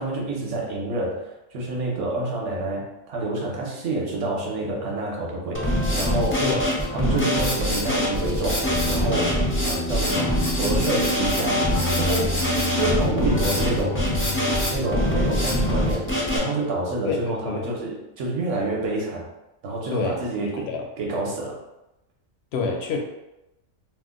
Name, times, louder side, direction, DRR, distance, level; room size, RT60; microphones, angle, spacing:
voice 1, 0.0-6.4 6.9-9.4 9.6-12.4 12.7-14.0 14.7-16.1 16.3-19.2 19.6-20.7 21.0-21.6, right 2 dB, 65° right, -2 dB, 1.1 m, -28 dB
Drum kit, 5.5-16.4, equal, 20° left, 0.4 m, -23 dB
voice 2, 10.2-10.8 17.0-17.6 19.9-20.2 20.6-20.9 22.5-23.0, left 4 dB, 65° left, 2 dB, 0.7 m, -28 dB
2.8 x 2.1 x 3.6 m, 0.93 s
omnidirectional pair, 1.4 m